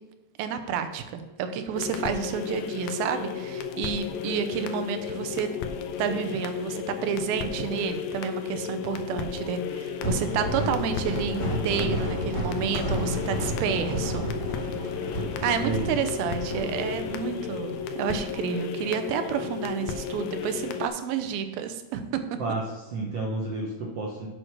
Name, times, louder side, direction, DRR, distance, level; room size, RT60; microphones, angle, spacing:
voice 1, 0.4-5.5 6.0-14.3 15.4-22.0, right 7 dB, 85° right, 8 dB, 2.6 m, -30 dB
sound 1, 1.7-20.9, left 7 dB, 80° left, 2.4 m, -34 dB
sound 2, 10.0-17.7, equal, 10° left, 1.7 m, -31 dB
sound 3, 12.7-13.3 15.4-16.0 18.2-18.3, equal, 40° right, 2.7 m, -44 dB
voice 2, 22.4-24.3, right 2 dB, 70° right, -2 dB, 1.5 m, -31 dB
8.0 x 6.3 x 5.9 m, 1.1 s
omnidirectional pair, 4.2 m